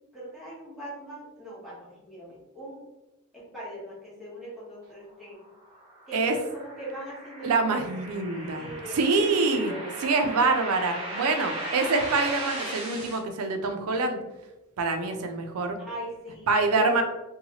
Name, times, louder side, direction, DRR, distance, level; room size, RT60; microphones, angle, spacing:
voice 1, 0.1-2.8 3.3-5.5 6.1-8.2 8.5-9.9 15.8-17.0, right 1 dB, ahead, -8 dB, 0.9 m, -40 dB
sound 1, 5.4-13.2, right 1 dB, 25° right, 1.0 m, -37 dB
voice 2, 7.4-8.6 8.9-9.7 10.0-14.2 14.8-15.8 16.5-17.0, right 3 dB, 85° right, 6 dB, 0.4 m, -25 dB
2.7 x 2.3 x 2.8 m, 1.0 s
head